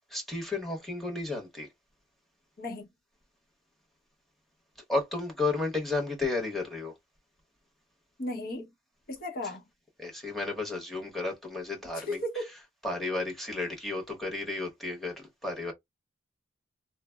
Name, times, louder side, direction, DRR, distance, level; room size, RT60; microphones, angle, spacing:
voice 1, 0.1-1.7 4.9-6.9 10.0-12.2 12.8-15.1 15.4-15.7, left 3 dB, ahead, 0.9 m, -32 dB
voice 2, 2.6-2.9 8.2-8.7 9.1-9.6 11.9-12.5, left 1 dB, 50° left, 0.8 m, -35 dB
3.2 x 2.0 x 2.2 m
head